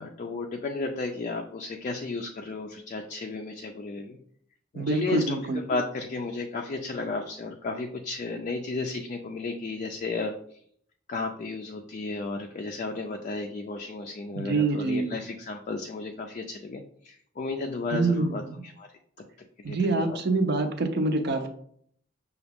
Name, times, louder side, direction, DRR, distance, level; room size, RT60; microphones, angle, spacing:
voice 1, 0.0-4.2 4.7-10.6 11.1-18.9 19.6-20.2, left 3 dB, 40° left, 3 dB, 0.3 m, -33 dB
voice 2, 4.7-5.6 14.3-15.1 17.9-18.6 19.6-21.5, right 3 dB, 60° right, 7 dB, 0.6 m, -26 dB
5.7 x 2.3 x 3.5 m, 0.64 s
head